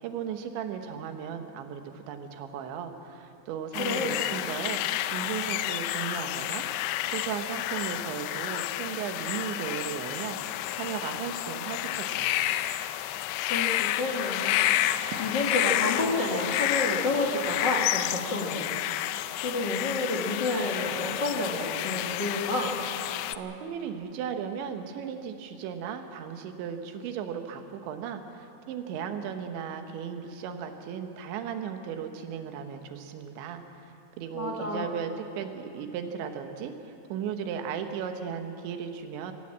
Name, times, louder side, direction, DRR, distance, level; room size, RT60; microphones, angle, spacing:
voice 1, 0.0-6.7 7.1-12.6 23.4-33.6 34.2-39.3, right 7 dB, 80° right, 6 dB, 3.5 m, -36 dB
sound 1, 3.7-23.4, left 14 dB, 85° left, 2.4 m, -30 dB
voice 2, 3.8-4.2 13.5-14.6 15.2-18.7 19.4-22.8 34.3-34.9, left 2 dB, 60° left, -1 dB, 1.1 m, -29 dB
24.5 x 16.5 x 7.5 m, 2.9 s
omnidirectional pair, 5.2 m